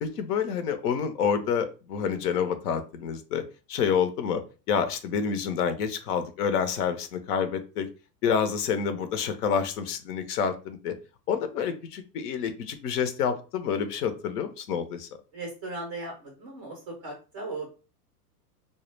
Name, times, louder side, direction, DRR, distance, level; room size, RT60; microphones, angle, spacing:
voice 1, 0.0-3.4 3.7-4.4 4.7-7.9 8.2-10.9 11.3-15.1, left 7 dB, 70° left, 9 dB, 0.6 m, -28 dB
voice 2, 15.3-17.7, right 2 dB, 20° right, -1 dB, 0.3 m, -37 dB
2.1 x 2.0 x 3.1 m, 0.33 s
hypercardioid pair, 135°, 49 cm